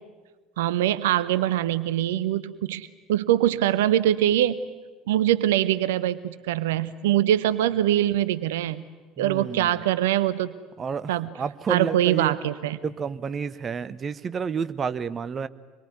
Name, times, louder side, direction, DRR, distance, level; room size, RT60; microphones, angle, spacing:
voice 1, 0.6-4.6 5.1-8.8 9.2-10.5 11.1-11.3 11.7-12.8, right 12 dB, 70° right, 16 dB, 0.7 m, -23 dB
voice 2, 9.2-9.8 10.8-12.3 12.8-15.5, right 6 dB, 35° right, 15 dB, 1.0 m, -30 dB
26.0 x 22.5 x 9.5 m, 1.3 s
figure-of-eight pair, 65°, 0 cm